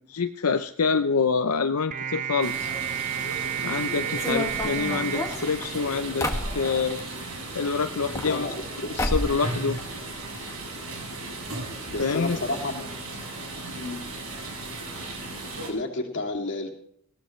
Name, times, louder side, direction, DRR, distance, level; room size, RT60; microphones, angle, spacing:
voice 1, 0.1-2.7 3.6-6.3 6.5-7.0 7.5-8.5 8.9-9.8 12.0-12.4, left 5 dB, 85° left, 7 dB, 0.7 m, -26 dB
sound 1, 1.9-6.4, right 9 dB, 35° right, 0.6 m, -32 dB
sound 2, 2.4-15.7, right 2 dB, 70° right, 6.3 m, -36 dB
sound 3, 4.1-7.1 7.9-8.7 9.0-9.4 9.7-10.5 10.8-10.9 11.1-11.2 11.9-12.0 12.3-12.5, left 1 dB, 15° left, 1.9 m, -31 dB
voice 2, 8.2-9.2 11.9-12.9 13.8-14.0 15.7-16.7, left 2 dB, 55° left, 3 dB, 2.8 m, -31 dB
20.0 x 17.0 x 3.2 m, 0.67 s
head